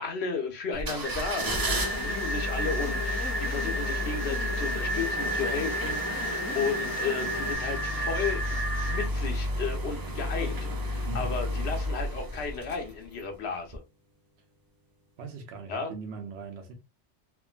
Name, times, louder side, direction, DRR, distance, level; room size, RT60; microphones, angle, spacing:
voice 1, 0.0-13.8 15.7-15.9, left 5 dB, 85° left, 1.1 m, -34 dB
sound 1, 0.7-13.2 13.7-13.8, left 1 dB, 40° right, 0.3 m, -33 dB
sound 2, 1.0-9.1, right 1 dB, 15° right, 0.7 m, -33 dB
sound 3, 1.4-7.6, left 3 dB, 20° left, 0.5 m, -38 dB
voice 2, 15.2-16.7, right 4 dB, 85° right, 1.0 m, -40 dB
3.4 x 2.2 x 2.3 m
omnidirectional pair, 1.1 m